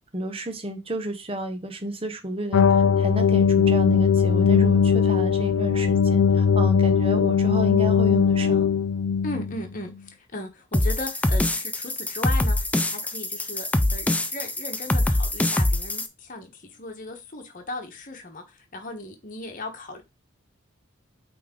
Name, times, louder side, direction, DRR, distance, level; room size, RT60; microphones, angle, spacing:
voice 1, 0.1-2.6 3.0-8.7, right 1 dB, 25° right, 0.9 m, -31 dB
sound 1, 2.5-9.6, left 6 dB, 80° left, 0.3 m, -20 dB
voice 2, 9.2-20.0, left 2 dB, 40° left, 1.1 m, -37 dB
sound 2, 10.7-16.1, left 1 dB, 5° left, 0.4 m, -24 dB
8.4 x 3.5 x 3.8 m
head